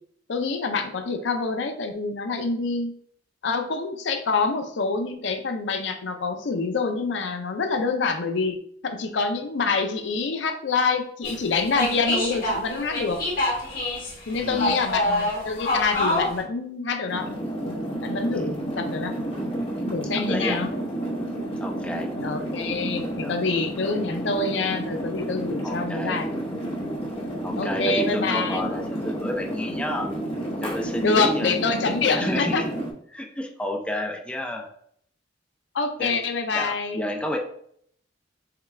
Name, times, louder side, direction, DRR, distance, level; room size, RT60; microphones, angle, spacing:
voice 1, 0.3-2.9 3.4-8.6 8.8-13.2 14.3-17.3 18.0-19.1 19.9-20.7 22.2-26.3 27.6-28.6 31.0-32.6 35.7-37.0, left 4 dB, 65° left, 6 dB, 0.5 m, -26 dB
sound 1, 11.2-11.4 11.6-16.4, left 1 dB, 50° left, 1.7 m, -26 dB
voice 2, 14.4-14.8 18.3-18.6 20.1-20.6 21.6-22.1 23.2-23.4 24.1-24.2 25.6-26.2 27.4-30.1 30.6-32.7 33.1-34.7 36.0-36.2 36.5-37.4, left 1 dB, 5° left, 1 dB, 0.4 m, -31 dB
sound 2, 17.1-32.9, right 1 dB, 30° left, 0.9 m, -31 dB
5.7 x 2.3 x 3.2 m, 0.65 s
head